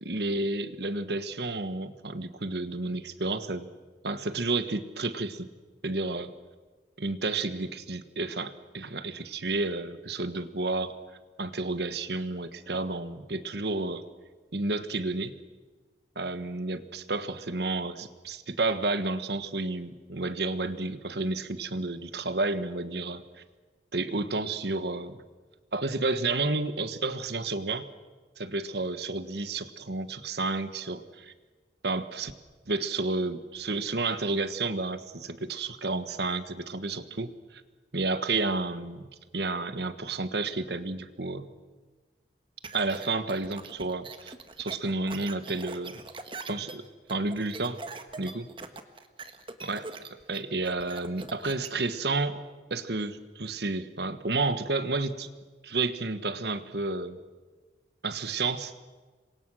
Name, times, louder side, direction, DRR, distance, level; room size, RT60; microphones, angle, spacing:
voice 1, 0.0-3.7 4.0-5.5 5.8-6.3 7.0-10.9 11.4-14.0 14.5-15.3 16.1-23.2 23.9-25.2 25.7-27.9 28.4-31.3 31.8-32.3 32.7-37.6 37.9-39.1 39.3-41.5 42.7-46.0 46.5-47.8 48.2-48.5 49.6-49.9 50.3-52.4 52.7-55.3 55.6-57.2 58.0-58.7, right 3 dB, 65° right, 11 dB, 1.4 m, -31 dB
sound 1, 42.6-51.7, right 3 dB, 30° right, 1.4 m, -42 dB
27.5 x 23.5 x 6.4 m, 1.4 s
head